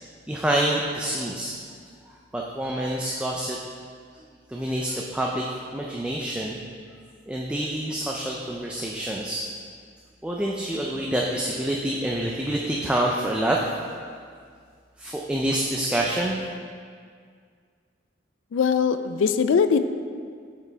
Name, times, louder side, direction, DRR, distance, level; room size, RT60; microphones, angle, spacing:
voice 1, 0.0-1.5 2.1-3.6 4.5-5.5 5.7-6.6 7.3-9.4 10.2-13.6 15.0-16.4, right 1 dB, 5° right, -2 dB, 0.3 m, -27 dB
voice 2, 18.5-19.8, left 6 dB, 85° left, 11 dB, 0.3 m, -21 dB
7.9 x 4.9 x 3.3 m, 2.1 s
head